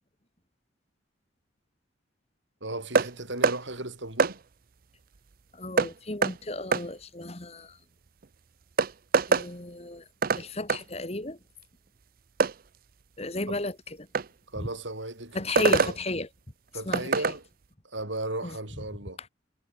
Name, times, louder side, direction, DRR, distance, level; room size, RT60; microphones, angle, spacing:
voice 1, 2.6-4.4 13.5-13.6 14.5-16.0 16.7-17.4 17.8-19.2, right 2 dB, 70° right, 5.8 m, -35 dB
sound 1, 2.9-3.1 3.4-3.6 4.2-4.3 5.8-5.9 6.2-6.3 6.7-6.9 8.2-8.3 8.8-9.5 10.2-10.4 10.7-10.8 12.4-12.5 14.1-14.3 15.6-15.9 16.9-17.4, right 4 dB, 50° right, 0.6 m, -23 dB
voice 2, 5.5-7.8 9.3-10.0 10.4-11.4 13.2-13.8 14.6-14.7 15.3-16.3 16.9-17.1 18.4-18.6, left 2 dB, 30° left, 2.0 m, -33 dB
head